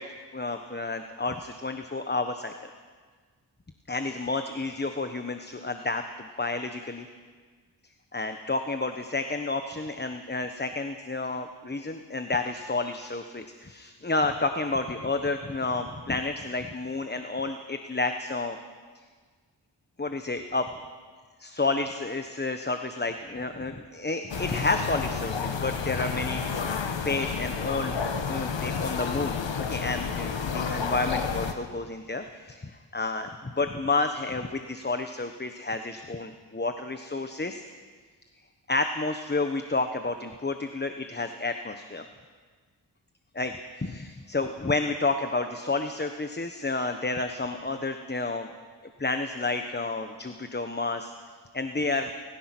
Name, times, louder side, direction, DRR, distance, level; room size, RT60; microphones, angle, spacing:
voice 1, 0.0-2.7 3.9-7.1 8.1-18.6 20.0-20.7 21.4-27.9 28.3-37.6 38.7-42.1 43.3-48.5 49.0-51.1 51.5-52.1, left 3 dB, 25° left, 7 dB, 1.1 m, -30 dB
sound 1, 24.3-31.5, left 5 dB, 90° left, 1.5 m, -30 dB
29.5 x 15.0 x 6.1 m, 1.6 s
cardioid pair, 60°, 43 cm